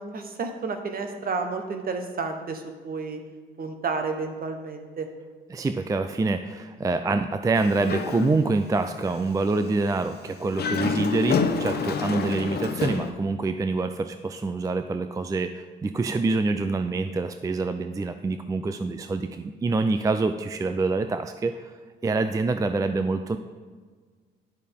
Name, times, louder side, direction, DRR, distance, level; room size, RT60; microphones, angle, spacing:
voice 1, 0.0-3.2 3.6-5.1, right 4 dB, 50° right, 6 dB, 1.1 m, -31 dB
voice 2, 5.5-21.7 22.0-23.4, right 3 dB, 15° right, 9 dB, 0.4 m, -26 dB
Dog, 7.5-8.7 9.1-9.2 10.4-13.1, left 5 dB, 55° left, 0.8 m, -28 dB
10.0 x 6.4 x 3.6 m, 1.5 s
cardioid pair, 90°, 20 cm